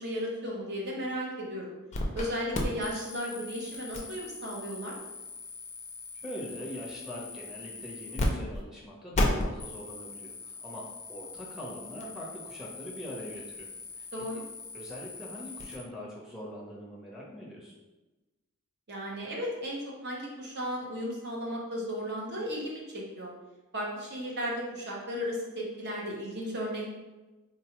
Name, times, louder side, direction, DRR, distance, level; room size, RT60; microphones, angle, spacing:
voice 1, 0.0-1.7 2.1-5.0 14.1-14.4 18.9-23.3 23.7-26.9, equal, 50° right, -3 dB, 0.7 m, -35 dB
sound 1, 1.9-2.3 2.5-8.3 8.5-8.6 9.1-15.8, left 2 dB, 30° left, 0.4 m, -36 dB
voice 2, 6.2-13.7 14.0-14.2 14.7-17.7, equal, ahead, -5 dB, 0.7 m, -42 dB
3.7 x 2.2 x 2.9 m, 1.1 s
head